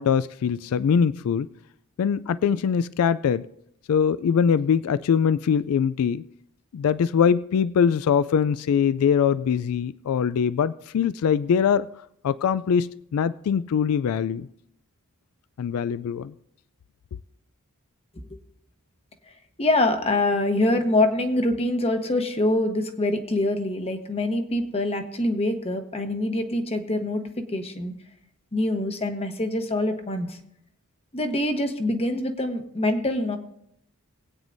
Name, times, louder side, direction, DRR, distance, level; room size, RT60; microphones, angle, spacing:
voice 1, 0.0-1.5 2.0-3.5 3.9-6.2 6.7-11.9 12.2-14.5 15.6-16.3, left 7 dB, 70° left, 16 dB, 0.3 m, -22 dB
voice 2, 19.6-27.9 28.5-30.4 31.1-33.4, left 1 dB, 25° left, 6 dB, 1.0 m, -25 dB
22.0 x 9.0 x 2.6 m, 0.75 s
head